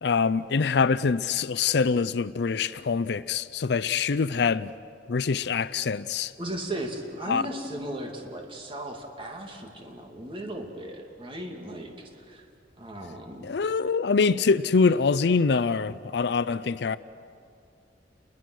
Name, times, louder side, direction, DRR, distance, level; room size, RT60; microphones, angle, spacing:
voice 1, 0.0-4.7 5.1-6.3 7.3-7.4 13.4-17.0, left 5 dB, 65° left, 0.5 m, -24 dB
voice 2, 6.4-11.9 12.3-12.4 12.8-13.5, right 1 dB, 30° right, 2.4 m, -36 dB
29.5 x 22.0 x 6.3 m
head